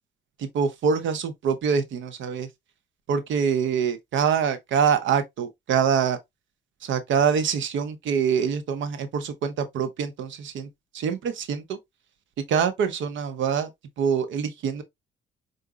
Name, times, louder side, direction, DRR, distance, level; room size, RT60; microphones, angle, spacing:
voice 1, 0.4-2.5 3.1-6.2 6.8-10.7 10.9-11.8 12.5-13.7 14.0-14.8, right 7 dB, 75° right, 0.8 m, -25 dB
4.8 x 2.6 x 2.3 m
cardioid pair, 90°, 20 cm